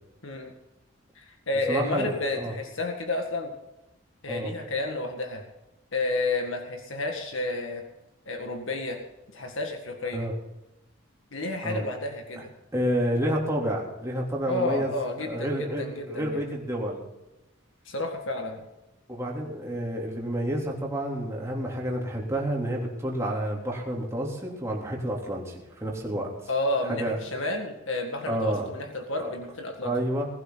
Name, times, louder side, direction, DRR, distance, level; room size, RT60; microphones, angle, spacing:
voice 1, 1.2-3.5 4.2-5.4 5.9-7.8 8.3-9.0 9.3-10.3 11.3-12.5 14.5-16.4 17.9-18.6 26.5-29.9, left 2 dB, 75° left, 3 dB, 1.9 m, -31 dB
voice 2, 1.7-2.5 4.3-4.5 10.1-10.3 11.6-11.8 12.7-14.9 15.2-17.0 19.1-26.3 26.8-27.2 28.3-28.7 29.2-29.3 29.8-30.3, right 1 dB, 15° right, -3 dB, 3.5 m, -29 dB
20.5 x 11.5 x 4.1 m, 0.99 s
head